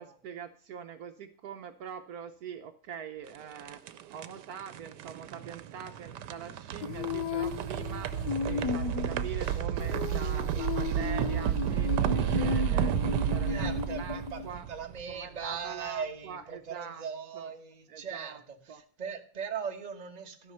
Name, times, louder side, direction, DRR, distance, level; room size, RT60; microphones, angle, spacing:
voice 1, 0.0-14.7 15.1-17.1 17.3-17.5 17.9-18.4 18.7-18.8, right 7 dB, 70° right, 9 dB, 1.1 m, -43 dB
sound 1, 3.3-15.4, right 10 dB, 85° right, 1.3 m, -32 dB
Female singing, 6.8-14.5, left 7 dB, 80° left, 1.4 m, -35 dB
voice 2, 13.4-20.5, right 6 dB, 25° right, 5 dB, 1.2 m, -39 dB
12.5 x 6.0 x 6.6 m, 0.43 s
omnidirectional pair, 1.8 m